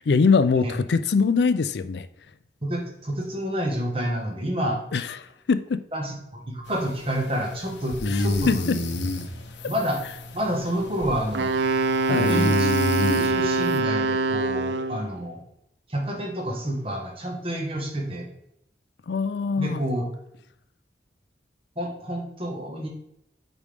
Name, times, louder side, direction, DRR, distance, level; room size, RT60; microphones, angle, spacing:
voice 1, 0.0-2.1 4.9-5.1 5.5-5.8 8.1-8.8 12.1-12.4 19.1-19.8, left 5 dB, 70° left, 0.4 m, -22 dB
voice 2, 2.6-4.8 5.9-8.6 9.0-9.1 9.6-10.0 10.3-11.6 12.1-12.7 13.2-15.4 15.9-18.3 19.6-20.1 21.7-22.9, equal, 30° right, 1.4 m, -29 dB
sound 1, 6.7-13.8, left 2 dB, 90° left, 0.9 m, -29 dB
Wind instrument woodwind instrument, 11.3-15.1, right 3 dB, 85° right, 0.5 m, -24 dB
8.2 x 5.3 x 3.4 m
head